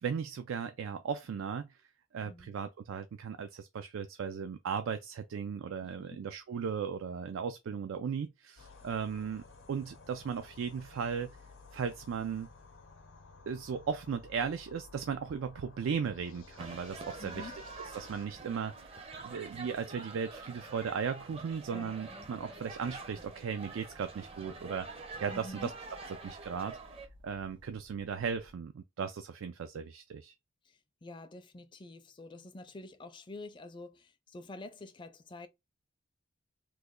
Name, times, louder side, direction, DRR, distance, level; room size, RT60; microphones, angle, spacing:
voice 1, 0.0-1.7 2.1-11.3 11.7-12.5 13.5-17.5 17.9-25.7 26.2-26.8 27.2-30.3, right 6 dB, 90° right, 0.4 m, -36 dB
voice 2, 2.2-2.6 5.8-6.2 17.2-17.6 21.7-21.9 25.3-25.7 30.7-35.5, left 2 dB, 25° left, 0.4 m, -47 dB
sound 1, 8.6-18.3, left 4 dB, 85° left, 0.7 m, -55 dB
sound 2, 14.2-28.5, equal, 65° right, 1.1 m, -62 dB
sound 3, 16.6-27.1, right 3 dB, 30° right, 0.6 m, -47 dB
3.1 x 2.2 x 3.6 m
head